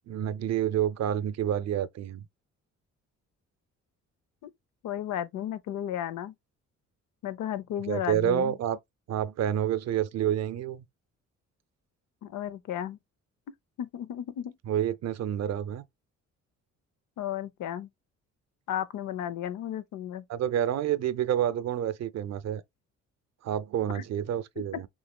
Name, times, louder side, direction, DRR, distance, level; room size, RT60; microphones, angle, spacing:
voice 1, 0.0-2.3 7.9-8.8 9.1-10.8 14.7-15.8 20.3-22.6 23.4-24.9, right 10 dB, 60° right, 0.6 m, -28 dB
voice 2, 4.8-6.3 7.2-8.6 12.2-13.0 13.8-14.6 17.2-17.9 18.7-20.2 23.9-24.0, left 10 dB, 80° left, 0.7 m, -34 dB
6.3 x 3.1 x 2.2 m
cardioid pair, 90°, 30 cm